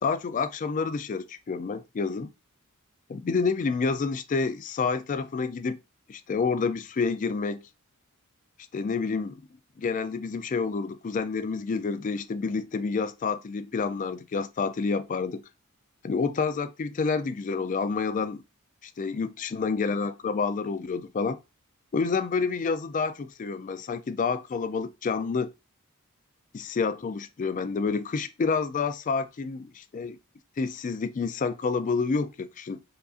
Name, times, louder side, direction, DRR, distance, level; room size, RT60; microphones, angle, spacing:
voice 1, 0.0-2.3 3.1-5.8 6.1-7.6 8.7-9.4 9.8-15.4 16.0-18.4 18.8-21.4 21.9-25.5 26.5-30.2 30.6-32.8, left 4 dB, 35° left, 0.3 m, -28 dB
4.7 x 2.5 x 2.4 m
head